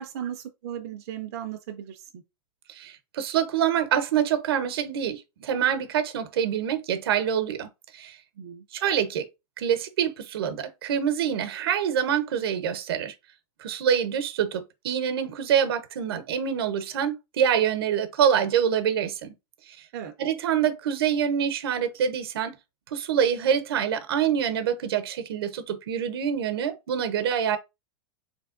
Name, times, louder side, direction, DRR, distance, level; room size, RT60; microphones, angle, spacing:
voice 1, 0.0-2.2 8.4-8.6 19.9-20.1, right 10 dB, 40° right, 0.5 m, -36 dB
voice 2, 2.7-7.7 7.9-8.2 8.7-9.3 9.6-13.1 13.6-19.3 20.2-22.5 22.9-27.6, right 8 dB, 70° right, 0.8 m, -26 dB
4.3 x 3.3 x 2.5 m
supercardioid pair, 180°, 13 cm